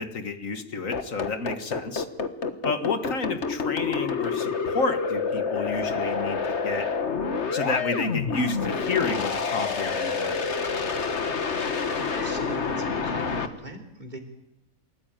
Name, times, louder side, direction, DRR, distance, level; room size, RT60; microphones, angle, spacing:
voice 1, 0.0-2.1 2.6-6.9 7.5-10.4, left 4 dB, 75° left, 8 dB, 2.0 m, -30 dB
sound 1, 0.9-13.5, left 5 dB, 55° left, 1.7 m, -28 dB
sound 2, 11.3-13.1, right 1 dB, 65° right, 4.2 m, -46 dB
voice 2, 11.7-14.2, right 1 dB, 35° right, 6 dB, 3.3 m, -41 dB
27.5 x 14.5 x 9.1 m, 0.91 s
omnidirectional pair, 1.4 m